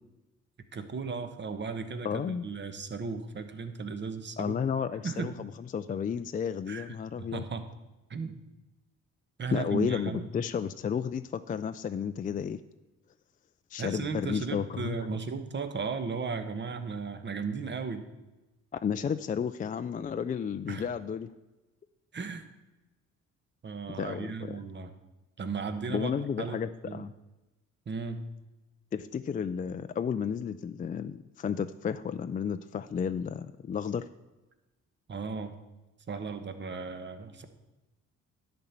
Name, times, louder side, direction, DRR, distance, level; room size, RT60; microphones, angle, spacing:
voice 1, 0.7-4.6 5.0-5.3 6.7-7.6 8.1-8.4 9.4-10.3 13.8-18.1 20.7-20.9 22.1-22.5 23.6-24.9 25.4-26.1 26.4-27.1 27.9-28.2 35.1-35.5 36.1-37.5, right 5 dB, 35° right, 8 dB, 1.1 m, -36 dB
voice 2, 2.0-2.4 4.4-7.4 9.5-12.6 13.7-15.0 18.8-21.3 23.9-24.6 25.9-27.1 28.9-34.1, left 7 dB, 30° left, 10 dB, 0.4 m, -32 dB
10.5 x 4.5 x 8.0 m, 1.1 s
cardioid pair, 90°, 30 cm